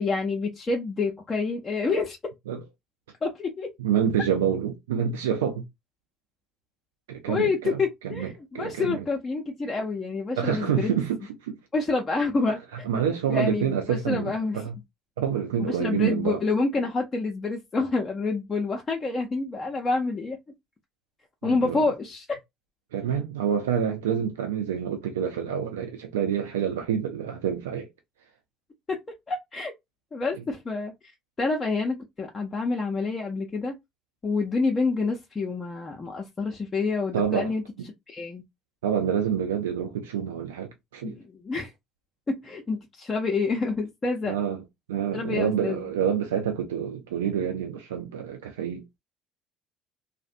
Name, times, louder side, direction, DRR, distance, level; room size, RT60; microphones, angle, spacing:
voice 1, 0.0-2.3 3.2-3.7 7.3-10.9 11.7-12.6 13.3-14.6 15.6-20.4 21.4-22.4 28.9-29.0 29.3-29.7 30.1-30.9 31.4-33.8 34.2-37.6 38.1-38.4 41.0-41.7 42.3-44.3 45.1-45.8, left 3 dB, 30° left, 0.6 m, -28 dB
voice 2, 3.8-5.6 7.1-9.0 10.4-11.6 12.8-14.7 15.2-16.4 21.4-21.8 22.9-27.9 37.1-37.5 38.8-41.1 44.3-44.6 44.9-49.0, right 8 dB, 85° right, 0.4 m, -27 dB
2.5 x 2.1 x 2.4 m
hypercardioid pair, 60°, 0 cm